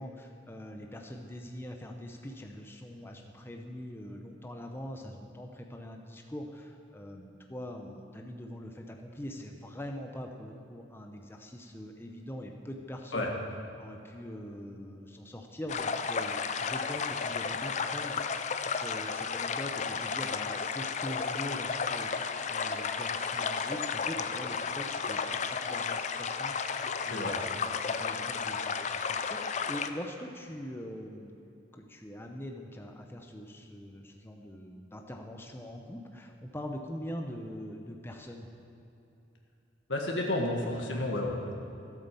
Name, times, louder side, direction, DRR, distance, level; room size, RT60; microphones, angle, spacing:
voice 1, 0.0-13.3 13.8-31.4 31.7-38.5, equal, 15° left, 2 dB, 0.7 m, -43 dB
sound 1, 15.7-29.9, left 5 dB, 40° left, 0.5 m, -33 dB
voice 2, 39.9-41.5, left 1 dB, 90° left, 0 dB, 1.7 m, -31 dB
13.0 x 8.4 x 6.9 m, 2.8 s
head